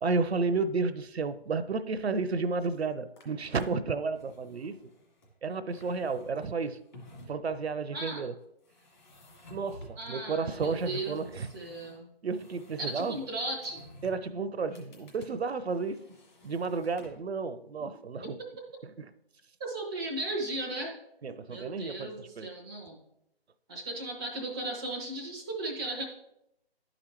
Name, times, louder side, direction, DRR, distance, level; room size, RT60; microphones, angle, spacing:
voice 1, 0.0-4.8 5.4-6.8 7.3-8.3 9.5-11.5 12.2-13.2 14.0-16.0 16.4-18.4 19.0-19.1 21.2-22.5, right 4 dB, 75° right, 0.6 m, -32 dB
sound 1, 3.2-3.7 4.1-5.3 5.6-7.6 8.6-10.1 10.4-12.0 12.3-14.3 14.7-15.3 15.6-17.3, equal, 45° left, 2.1 m, -53 dB
voice 2, 7.9-8.2 10.0-12.1 12.8-13.8 18.2-18.7 19.6-21.0 21.5-23.0 23.7-26.0, right 2 dB, 5° right, 0.4 m, -36 dB
11.5 x 5.0 x 3.0 m
figure-of-eight pair, 150°, 32 cm